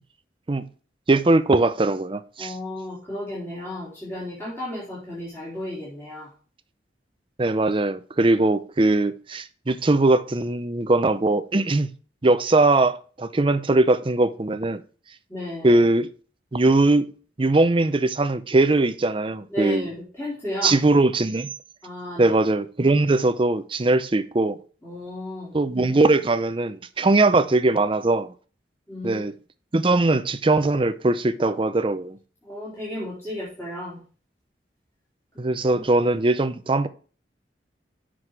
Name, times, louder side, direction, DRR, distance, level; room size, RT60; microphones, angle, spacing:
voice 1, 1.1-2.5 7.4-11.9 12.2-14.8 15.6-16.1 16.5-17.1 17.4-19.9 20.6-21.5 22.2-24.6 25.5-28.3 29.0-29.3 29.7-32.2 35.4-36.9, right 2 dB, 30° right, 0.5 m, -20 dB
voice 2, 2.4-6.3 15.3-15.8 19.5-20.8 21.8-22.4 24.8-25.6 28.9-29.2 32.4-34.0 35.7-35.8, left 1 dB, 15° left, 3.7 m, -34 dB
7.8 x 6.3 x 4.8 m
head